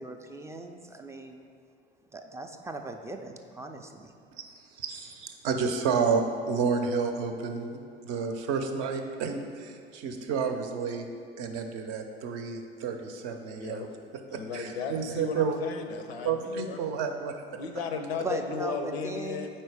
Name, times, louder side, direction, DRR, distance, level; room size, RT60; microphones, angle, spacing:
voice 1, 0.0-1.4 2.1-4.1 18.2-19.5, right 2 dB, 10° right, 5 dB, 0.3 m, -38 dB
voice 2, 4.8-7.7 8.0-11.1 11.4-13.9 14.3-15.6 16.2-17.3, right 5 dB, 55° right, 5 dB, 0.6 m, -30 dB
voice 3, 13.5-13.9 14.3-16.8 17.6-19.6, left 5 dB, 80° left, 6 dB, 0.5 m, -35 dB
4.5 x 4.3 x 4.8 m, 2.3 s
figure-of-eight pair, 60°, 31 cm